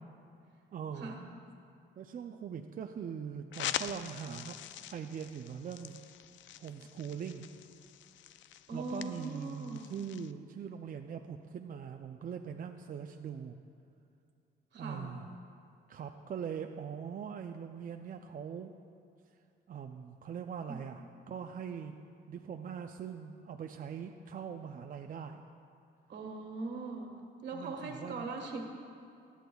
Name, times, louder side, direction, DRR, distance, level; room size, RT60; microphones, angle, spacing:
voice 1, 0.7-1.2 2.0-4.6 4.9-6.0 6.6-7.5 8.7-13.6 14.7-15.3 15.9-18.7 19.7-22.0 22.3-25.4 27.5-28.3, right 7 dB, 45° right, 5 dB, 0.5 m, -42 dB
sound 1, 3.5-10.3, left 11 dB, 70° left, 0.4 m, -44 dB
voice 2, 8.7-9.9 14.7-15.1 26.1-27.1 27.4-28.6, right 3 dB, 60° right, 2 dB, 1.5 m, -40 dB
17.0 x 11.5 x 2.3 m, 2.5 s
cardioid pair, 90°, 20 cm